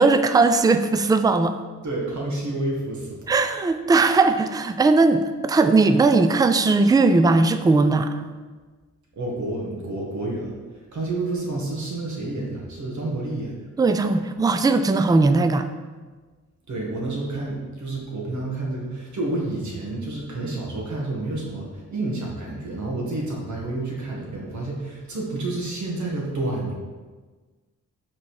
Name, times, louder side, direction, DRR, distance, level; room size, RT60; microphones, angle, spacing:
voice 1, 0.0-1.5 3.3-8.2 13.8-15.7, right 3 dB, 15° right, 9 dB, 0.3 m, -18 dB
voice 2, 1.8-3.3 9.2-10.5 10.9-13.5 16.7-26.7, right 2 dB, 75° right, -2 dB, 1.9 m, -29 dB
6.0 x 4.2 x 6.4 m, 1.4 s
wide cardioid pair, 155°, 29 cm